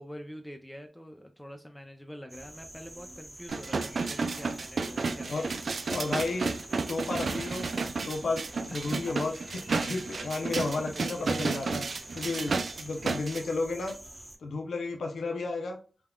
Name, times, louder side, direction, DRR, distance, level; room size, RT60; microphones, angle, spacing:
voice 1, 0.0-6.2 8.7-9.1 11.0-11.3, equal, 10° left, 4 dB, 0.5 m, -46 dB
sound 1, 2.3-14.4, right 1 dB, 20° right, 0.9 m, -47 dB
sound 2, 3.5-13.4 13.9-14.0, right 4 dB, 75° right, 0.3 m, -32 dB
voice 2, 5.9-6.6 6.9-7.7 8.0-11.9 12.1-13.9 14.4-15.8, left 3 dB, 85° left, 2 dB, 0.5 m, -32 dB
sound 3, 8.1-8.2 8.5-11.6, right 1 dB, 35° right, 1.1 m, -56 dB
3.4 x 2.2 x 2.2 m, 0.38 s
cardioid pair, 40°, 0 cm